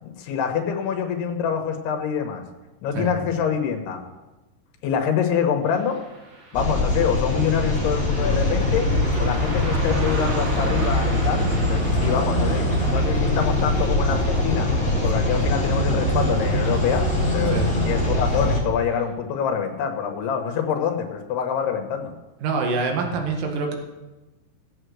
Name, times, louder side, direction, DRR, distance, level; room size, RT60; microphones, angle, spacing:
voice 1, 0.0-2.4 2.8-4.0 4.8-6.0 6.5-8.9 9.2-11.4 11.7-14.7 15.0-17.0 17.3-17.6 17.8-22.1, left 7 dB, 85° left, 4 dB, 3.3 m, -25 dB
Car passing by, 5.7-16.5 16.8-16.9 17.8-18.0 18.5-18.6 19.1-19.2, right 2 dB, 85° right, 4.9 m, -39 dB
sound 1, 6.5-18.6, left 1 dB, ahead, 3.3 m, -22 dB
voice 2, 22.4-23.8, right 4 dB, 60° right, 2 dB, 3.2 m, -25 dB
17.5 x 8.1 x 6.3 m, 1.1 s
omnidirectional pair, 4.6 m